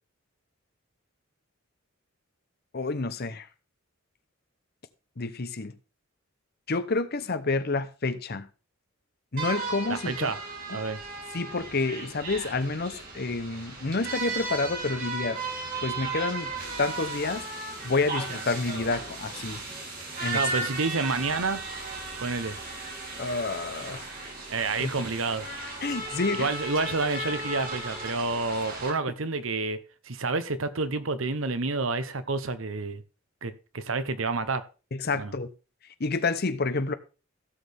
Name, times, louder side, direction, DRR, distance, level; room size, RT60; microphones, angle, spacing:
voice 1, 2.7-3.5 5.2-5.7 6.7-8.5 9.3-10.3 10.7-10.8 11.3-15.4 15.8-16.5 16.8-17.5 17.8-19.6 20.2-20.4 23.2-24.1 24.8-24.9 25.8-26.5 34.9-35.5 36.0-36.9, left 3 dB, 50° left, 0.9 m, -29 dB
sound 1, 9.4-28.9, right 3 dB, 45° right, 3.3 m, -35 dB
voice 2, 9.9-10.4 10.7-11.0 20.3-21.6 22.2-22.6 24.5-25.5 26.3-33.0 33.4-34.6 35.1-35.3, right 3 dB, 75° right, 1.0 m, -29 dB
16.0 x 6.6 x 3.5 m
head